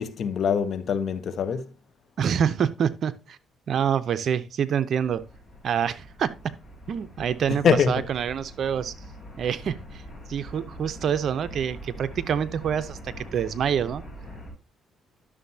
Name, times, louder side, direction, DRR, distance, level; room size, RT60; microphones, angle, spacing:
voice 1, 0.0-1.7 7.6-8.0, left 6 dB, 60° left, 0.8 m, -23 dB
voice 2, 2.2-3.4 3.7-5.2 5.6-6.5 6.9-8.9 9.4-10.0 10.3-14.0, right 8 dB, 60° right, 0.6 m, -26 dB
sound 1, 5.0-14.5, equal, 30° left, 3.6 m, -43 dB
11.0 x 6.7 x 2.7 m
cardioid pair, 90°, 0 cm